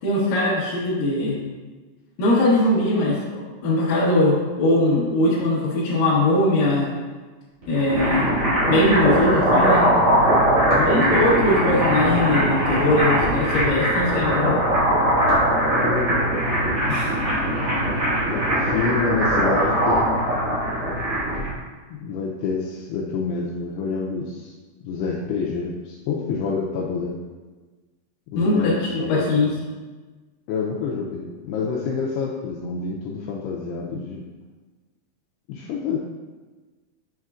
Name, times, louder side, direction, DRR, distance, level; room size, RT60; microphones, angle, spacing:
voice 1, 0.0-1.4 2.2-6.9 7.7-9.9 10.9-14.6 16.9-17.1 28.4-29.5, left 1 dB, 65° left, -7 dB, 2.4 m, -21 dB
sound 1, 7.6-21.5, right 1 dB, 45° right, 1.7 m, -20 dB
voice 2, 10.7-11.3 15.6-16.3 18.3-20.3 21.9-24.5 24.8-27.2 28.3-29.4 30.5-34.2 35.5-36.0, left 5 dB, 90° left, -2 dB, 2.3 m, -28 dB
7.7 x 5.6 x 2.4 m, 1.3 s
omnidirectional pair, 5.3 m